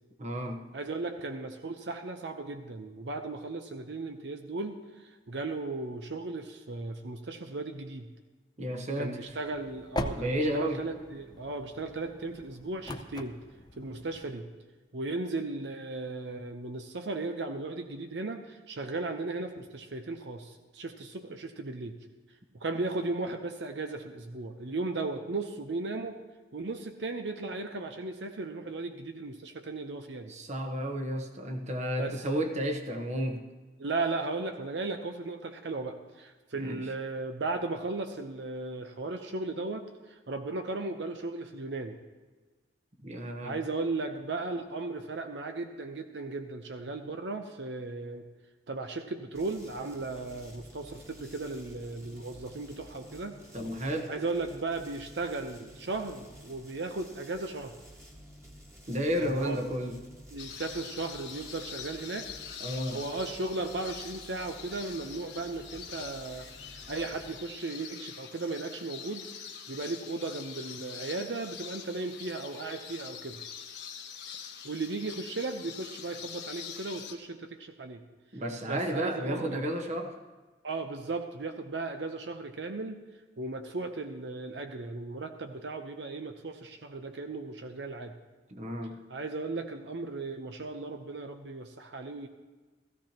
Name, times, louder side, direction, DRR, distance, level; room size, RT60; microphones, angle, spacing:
voice 1, 0.2-0.6 8.6-9.3 10.1-10.9 30.3-33.4 36.6-36.8 43.0-43.6 53.5-54.1 58.9-60.0 62.6-63.0 78.3-80.2 88.5-89.0, equal, 40° right, 4 dB, 1.2 m, -32 dB
voice 2, 0.7-8.1 9.0-13.4 13.8-14.5 14.9-22.0 22.5-26.2 26.5-30.3 32.0-32.2 33.8-42.0 43.4-48.2 48.7-53.4 54.1-57.7 59.2-59.6 60.3-62.3 62.9-69.3 69.7-73.4 74.6-78.0 78.6-79.4 80.6-83.0 83.4-88.1 89.1-92.3, right 3 dB, 80° right, 6 dB, 0.8 m, -36 dB
sound 1, 9.3-14.3, left 1 dB, 25° left, 0.7 m, -41 dB
sound 2, 49.3-67.3, equal, 15° right, 1.7 m, -52 dB
sound 3, 60.4-77.1, left 8 dB, 90° left, 1.3 m, -44 dB
16.5 x 14.5 x 3.0 m, 1.3 s
head